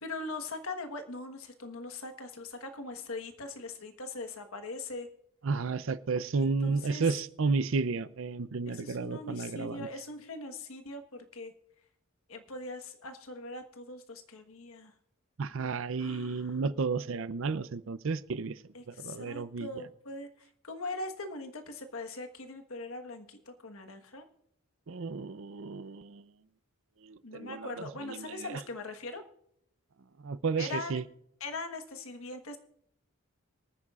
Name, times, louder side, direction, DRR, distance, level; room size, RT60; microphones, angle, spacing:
voice 1, 0.0-5.1 6.3-7.1 8.7-11.5 12.3-14.9 16.0-16.6 18.7-24.2 27.2-29.2 30.6-31.0 31.4-32.6, left 2 dB, 75° left, 6 dB, 1.3 m, -41 dB
voice 2, 5.4-9.9 15.4-18.6 18.9-19.7 24.9-26.2 27.0-28.5 30.2-31.0, right 4 dB, 65° right, 16 dB, 0.5 m, -32 dB
24.5 x 9.7 x 2.4 m, 0.73 s
head